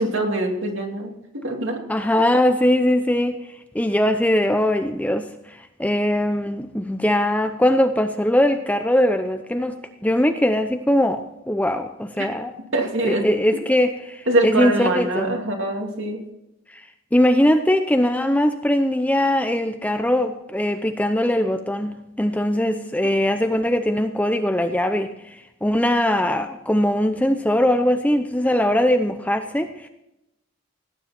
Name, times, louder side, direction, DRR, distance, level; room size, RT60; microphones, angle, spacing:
voice 1, 0.0-1.8 12.7-13.3 13.5-13.6 14.3-16.2, right 1 dB, 60° right, 2 dB, 2.7 m, -23 dB
voice 2, 1.9-3.4 3.7-12.5 13.0-15.3 16.7-16.8 17.1-29.9, left 1 dB, 5° left, 7 dB, 0.6 m, -21 dB
17.5 x 10.0 x 4.3 m, 0.88 s
head